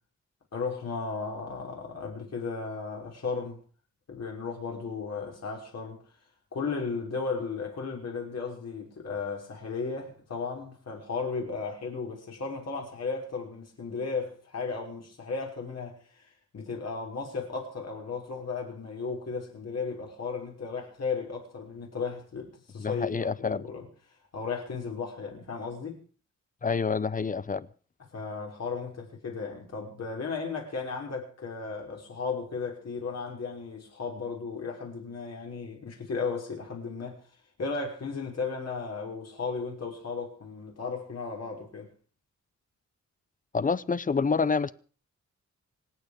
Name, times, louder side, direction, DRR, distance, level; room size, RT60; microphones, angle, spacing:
voice 1, 0.5-3.6 4.1-6.0 6.5-16.2 16.5-23.9 24.3-26.0 28.1-37.2 37.6-41.9, left 4 dB, 60° left, 5.8 m, -35 dB
voice 2, 22.8-23.7 26.6-27.7 43.5-44.7, left 5 dB, 30° left, 0.7 m, -27 dB
26.5 x 9.2 x 5.1 m
wide cardioid pair, 135°, 29 cm